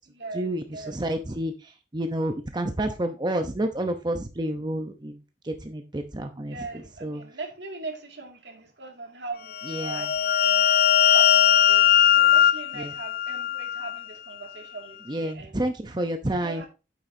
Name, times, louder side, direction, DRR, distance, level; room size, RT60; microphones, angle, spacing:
voice 1, 0.3-7.4 9.6-10.1 12.7-13.0 15.0-16.6, right 1 dB, 25° right, 0.8 m, -30 dB
voice 2, 6.5-10.1 10.4-10.7 11.0-15.5 16.4-16.7, right 3 dB, 80° right, 2.3 m, -39 dB
sound 1, 9.5-14.0, left 11 dB, 60° left, 0.4 m, -20 dB
8.9 x 7.6 x 2.7 m
head